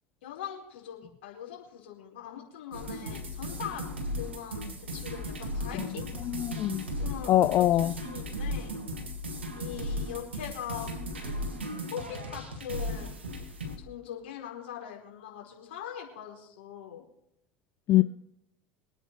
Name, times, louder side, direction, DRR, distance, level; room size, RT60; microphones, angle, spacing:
voice 1, 0.2-3.9 4.1-6.1 7.0-8.8 9.5-11.5 11.8-13.2 13.8-17.0 17.9-18.0, left 10 dB, 70° left, 4.8 m, -42 dB
sound 1, 2.7-13.8, equal, 85° right, 2.5 m, -36 dB
voice 2, 6.3-6.9 7.3-7.9 17.9-18.0, left 14 dB, 45° left, 0.5 m, -23 dB
25.5 x 9.2 x 3.2 m
hypercardioid pair, 75°, 6 cm